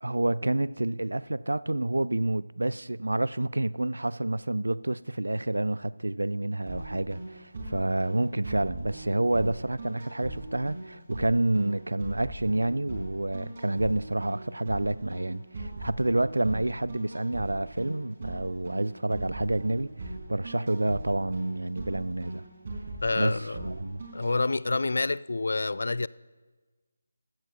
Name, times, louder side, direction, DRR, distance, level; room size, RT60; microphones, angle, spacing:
voice 1, 0.0-22.4 23.2-24.0, right 2 dB, 85° right, 0.3 m, -29 dB
sound 1, 6.7-24.3, right 2 dB, 45° right, 3.9 m, -40 dB
voice 2, 23.0-23.7 24.1-26.1, left 3 dB, 65° left, 0.3 m, -28 dB
15.5 x 14.5 x 2.9 m
figure-of-eight pair, 155°, 0 cm